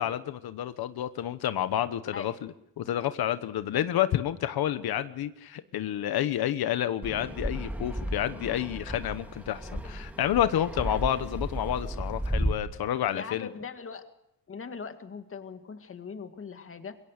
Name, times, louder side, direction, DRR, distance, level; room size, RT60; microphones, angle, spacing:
voice 1, 0.0-13.5, left 11 dB, 90° left, 11 dB, 1.1 m, -29 dB
Fixed-wing aircraft airplane, 7.0-12.5, equal, 5° right, 1.9 m, -34 dB
voice 2, 13.1-14.1 14.5-17.0, left 5 dB, 35° left, 7 dB, 2.0 m, -40 dB
27.5 x 23.0 x 6.6 m, 0.81 s
wide cardioid pair, 160°, 36 cm